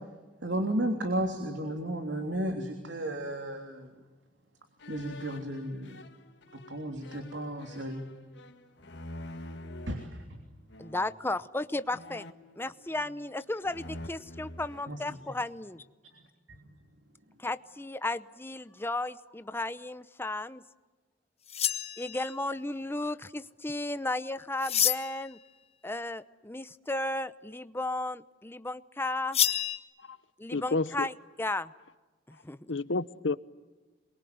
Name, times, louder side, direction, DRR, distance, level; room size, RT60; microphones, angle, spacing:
voice 1, 0.4-4.0 4.9-6.0 6.5-8.0 9.9-10.4 14.9-15.4 16.5-16.7, right 1 dB, 75° right, 3.3 m, -34 dB
sound 1, 4.8-10.1 10.7-11.2 11.9-13.3 13.6-15.6, left 1 dB, 70° left, 2.1 m, -47 dB
voice 2, 10.8-12.3 12.6-15.8 17.4-20.6 22.0-25.4 25.8-29.4 30.4-31.7 32.3-32.7, left 2 dB, 10° left, 0.8 m, -34 dB
sound 2, 21.5-22.4 24.6-25.3 29.3-29.8, left 10 dB, 35° left, 1.1 m, -28 dB
voice 3, 30.5-31.1 32.7-33.4, left 3 dB, 85° left, 0.9 m, -30 dB
27.5 x 22.5 x 9.5 m
head